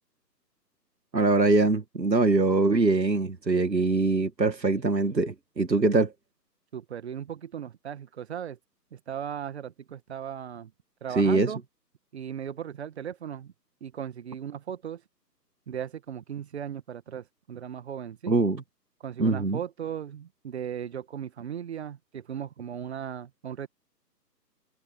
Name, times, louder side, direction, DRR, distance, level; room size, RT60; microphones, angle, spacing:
voice 1, 1.1-6.1 11.1-11.5 18.3-18.6 19.2-19.6, right 3 dB, 80° right, 2.0 m, -23 dB
voice 2, 6.7-8.6 8.9-10.7 11.0-11.6 12.1-13.5 13.8-15.0 15.7-18.4 19.0-23.7, right 8 dB, 40° right, 1.9 m, -37 dB
figure-of-eight pair, 140°, 50 cm